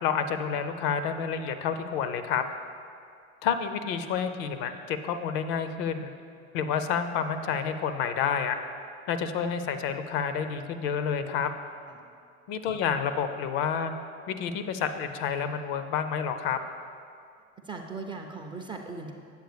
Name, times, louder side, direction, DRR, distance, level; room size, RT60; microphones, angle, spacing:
voice 1, 0.0-2.4 3.4-6.1 6.5-8.6 9.1-11.5 12.5-13.9 14.3-16.6, left 7 dB, 45° left, 9 dB, 0.5 m, -29 dB
voice 2, 17.6-19.1, right 4 dB, 10° right, 2 dB, 0.4 m, -39 dB
8.3 x 7.6 x 3.3 m, 2.3 s
figure-of-eight pair, 75°, 40 cm